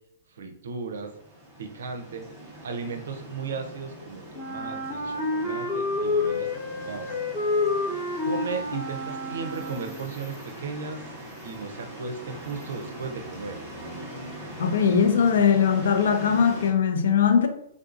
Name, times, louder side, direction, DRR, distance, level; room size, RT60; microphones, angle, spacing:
voice 1, 0.3-1.1 1.6-2.3 2.6-7.1 8.2-11.0 11.4-13.6, right 5 dB, 75° right, 0.6 m, -36 dB
sound 1, 0.9-16.7, right 1 dB, 15° right, 1.0 m, -42 dB
Wind instrument woodwind instrument, 4.3-10.1, left 2 dB, 40° left, 1.4 m, -29 dB
voice 2, 14.6-17.5, left 7 dB, 70° left, 0.5 m, -20 dB
3.5 x 2.6 x 2.5 m
hypercardioid pair, 170°, 0 cm